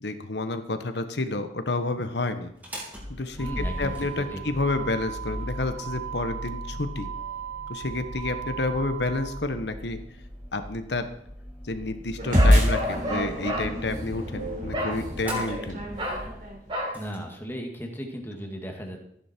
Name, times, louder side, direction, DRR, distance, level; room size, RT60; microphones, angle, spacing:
voice 1, 0.0-2.5 3.1-7.1 7.7-10.0 10.5-11.1 11.6-15.8, left 2 dB, 75° left, 9 dB, 1.3 m, -30 dB
Motor vehicle (road), 2.5-17.2, right 3 dB, 10° right, 3.4 m, -38 dB
voice 2, 3.4-4.6 16.9-19.0, equal, 15° left, 2 dB, 2.1 m, -36 dB
sound 1, 12.2-16.8, equal, 50° right, 4.0 m, -25 dB
Bark, 12.3-13.7 14.7-15.0 15.2-15.5 16.0-16.3 16.7-17.0, equal, 30° right, 3.1 m, -30 dB
15.5 x 10.5 x 4.6 m, 0.73 s
head